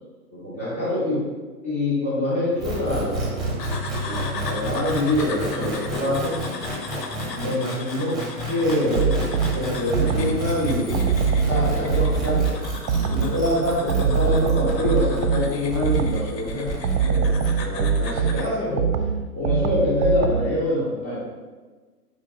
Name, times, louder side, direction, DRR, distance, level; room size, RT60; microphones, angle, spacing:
voice 1, 0.3-1.2 1.6-3.7 4.0-6.4 7.2-8.2 8.5-9.3 9.5-11.1 11.4-12.5 12.9-16.7 17.0-18.9 19.3-21.2, left 1 dB, 10° left, -10 dB, 0.3 m, -25 dB
sound 1, 2.6-17.5, right 1 dB, 10° right, 0.7 m, -30 dB
sound 2, 3.6-18.5, left 4 dB, 80° left, 0.7 m, -38 dB
sound 3, 8.9-10.5 10.9-13.4 13.9-16.4 16.8-20.6, right 6 dB, 75° right, 0.5 m, -23 dB
5.1 x 3.0 x 2.8 m, 1.4 s
figure-of-eight pair, 120°, 49 cm